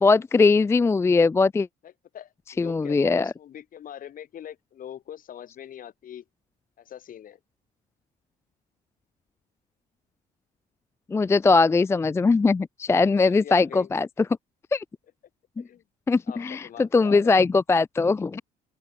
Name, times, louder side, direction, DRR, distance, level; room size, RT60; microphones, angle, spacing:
voice 1, 0.0-1.7 2.6-3.3 11.1-14.1 14.7-14.8 15.6-15.7 16.1-18.4, left 4 dB, 15° left, 0.4 m, -20 dB
voice 2, 1.8-6.2 6.8-7.4 13.0-13.9 15.6-15.8 16.3-17.4, left 10 dB, 55° left, 5.2 m, -42 dB
open air
cardioid pair, 110°, 17 cm